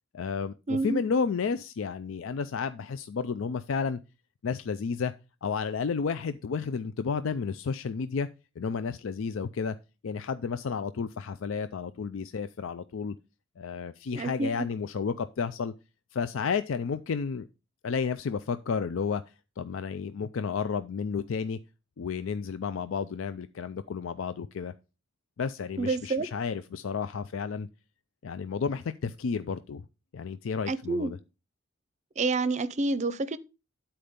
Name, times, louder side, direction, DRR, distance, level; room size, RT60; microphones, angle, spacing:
voice 1, 0.1-4.0 4.4-5.1 5.4-8.3 8.6-9.8 10.0-13.2 13.6-15.7 16.1-17.5 17.8-19.2 19.6-21.6 22.0-24.7 25.4-27.7 28.2-29.9 30.1-31.2, left 5 dB, 70° left, 0.4 m, -31 dB
voice 2, 0.7-1.0 14.1-14.7 25.8-26.3 30.7-31.1 32.2-33.4, right 3 dB, 35° right, 0.6 m, -28 dB
10.0 x 4.4 x 5.1 m
head